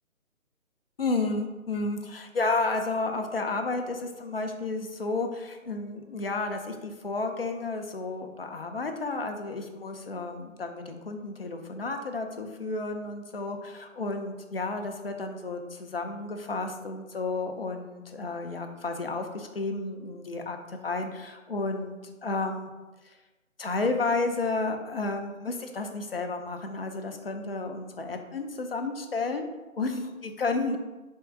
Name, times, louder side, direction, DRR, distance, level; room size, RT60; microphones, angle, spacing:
voice 1, 1.0-22.7 23.6-29.5 29.8-30.8, left 3 dB, 45° left, 5 dB, 0.5 m, -32 dB
3.5 x 3.0 x 4.5 m, 1.1 s
figure-of-eight pair, 145°, 41 cm